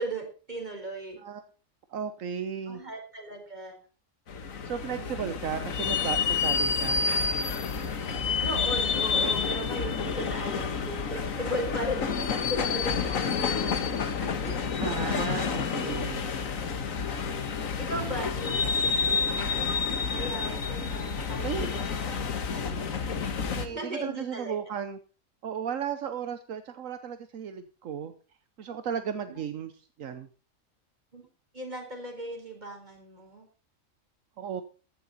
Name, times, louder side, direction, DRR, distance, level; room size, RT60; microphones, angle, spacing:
voice 1, 0.0-1.2 2.7-3.8 5.0-5.1 8.4-14.6 17.3-17.4 17.8-21.9 22.5-22.9 23.6-24.5 29.3-29.4 31.1-31.2 31.5-33.5, right 1 dB, 35° right, 3 dB, 4.3 m, -37 dB
voice 2, 1.9-2.8 4.6-7.1 14.8-16.3 21.4-21.7 23.6-25.0 25.4-28.1 28.6-29.7 30.0-30.3 34.4-34.6, right 7 dB, 75° right, 10 dB, 1.3 m, -34 dB
sound 1, 4.3-23.7, left 5 dB, 80° left, 1.7 m, -29 dB
15.0 x 11.5 x 4.2 m, 0.36 s
omnidirectional pair, 1.4 m